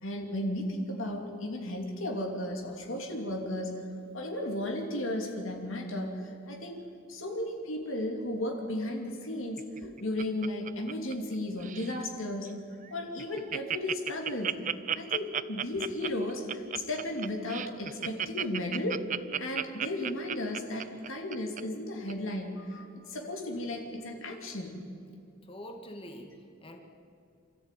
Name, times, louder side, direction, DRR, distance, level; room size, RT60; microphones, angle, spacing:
voice 1, 0.0-3.8 4.1-6.8 7.1-12.5 12.9-19.1 19.4-24.8, left 1 dB, 70° left, 1 dB, 2.9 m, -35 dB
Laughter, 9.6-11.3 11.6-12.0 12.5-12.6 12.8-12.9 13.2-21.6 22.1-22.2, right 9 dB, 35° right, 0.5 m, -33 dB
voice 2, 25.4-26.8, equal, 25° left, 4 dB, 2.1 m, -45 dB
26.5 x 14.0 x 9.3 m, 2.5 s
head